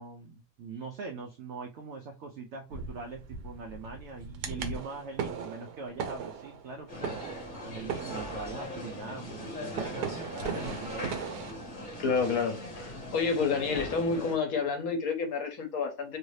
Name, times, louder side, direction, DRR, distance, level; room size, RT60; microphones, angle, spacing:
voice 1, 0.0-7.2 7.6-11.1, right 4 dB, 70° right, 0.7 m, -42 dB
sound 1, 2.7-11.5, right 6 dB, 85° right, 1.2 m, -39 dB
sound 2, 6.9-14.4, left 1 dB, 30° left, 1.1 m, -40 dB
voice 2, 10.4-10.8 12.0-16.2, left 5 dB, 65° left, 1.2 m, -30 dB
3.1 x 2.7 x 3.1 m
omnidirectional pair, 1.8 m